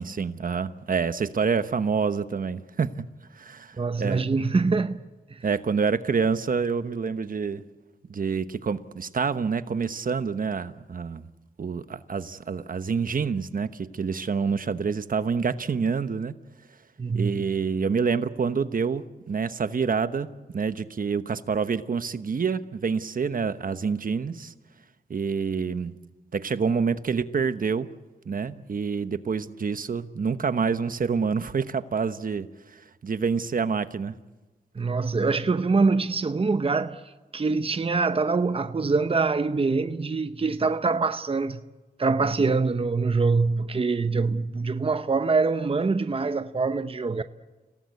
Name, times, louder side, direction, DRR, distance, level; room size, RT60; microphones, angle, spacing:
voice 1, 0.0-2.9 3.3-4.2 5.4-7.6 8.1-11.3 11.6-16.3 17.1-24.5 25.1-25.9 26.3-27.9 28.2-34.1, right 5 dB, 55° right, 1.1 m, -27 dB
voice 2, 3.8-5.4 17.0-17.3 34.8-37.0 37.3-41.6 42.0-47.2, right 4 dB, 35° right, 0.8 m, -24 dB
29.0 x 18.0 x 8.4 m
wide cardioid pair, 80°, 17 cm